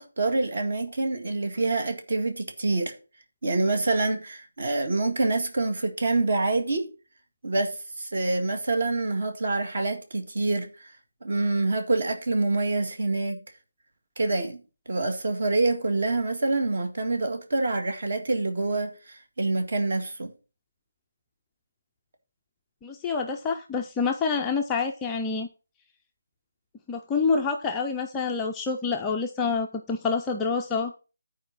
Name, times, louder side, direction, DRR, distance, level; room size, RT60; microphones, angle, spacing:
voice 1, 0.0-2.9 3.4-6.9 7.4-10.9 11.2-13.4 14.2-14.6 14.9-20.3, right 2 dB, 45° right, 1.9 m, -26 dB
voice 2, 22.8-25.5 26.9-30.9, left 5 dB, 5° left, 0.4 m, -27 dB
10.5 x 4.7 x 6.0 m
hypercardioid pair, 175°, 0 cm